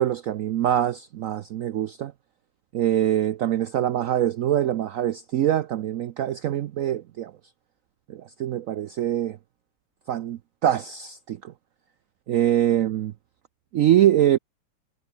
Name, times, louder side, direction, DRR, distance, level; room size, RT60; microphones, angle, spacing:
voice 1, 0.0-2.1 2.7-7.3 8.1-9.4 10.1-11.5 12.3-13.1 13.7-14.4, right 11 dB, 80° right, 0.7 m, -24 dB
omnidirectional pair, 2.1 m